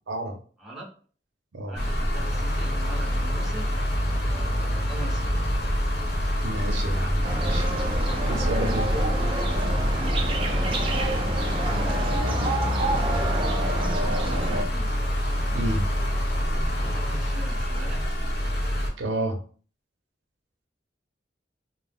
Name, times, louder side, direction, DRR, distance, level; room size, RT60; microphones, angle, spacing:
voice 1, 0.1-0.4 1.5-1.8 6.4-7.7 8.2-9.1 15.5-15.8 19.0-19.4, right 1 dB, 85° right, 3 dB, 0.6 m, -30 dB
voice 2, 0.6-0.9 1.7-3.7 4.3-5.4 10.4-11.2 11.8-12.6 14.3-14.9 16.5-18.0, right 1 dB, 5° right, -4 dB, 0.8 m, -41 dB
sound 1, 1.8-18.9, equal, 65° left, 0.8 m, -26 dB
sound 2, 2.1-17.9, equal, 15° left, 1.0 m, -37 dB
sound 3, 7.2-14.6, right 2 dB, 30° right, 0.4 m, -29 dB
2.3 x 2.0 x 3.4 m, 0.42 s
head